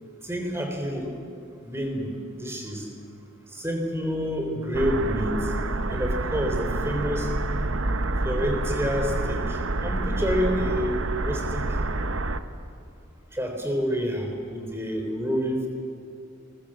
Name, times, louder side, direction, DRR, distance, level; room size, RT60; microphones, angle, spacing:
voice 1, 0.2-1.1 1.6-2.9 3.5-5.5 5.9-7.3 8.2-11.0 11.2-11.6 13.3-15.7, equal, 10° right, 3 dB, 3.8 m, -28 dB
sound 1, 4.7-12.4, right 2 dB, 80° right, 1.1 m, -28 dB
29.0 x 21.5 x 7.8 m, 2.4 s
head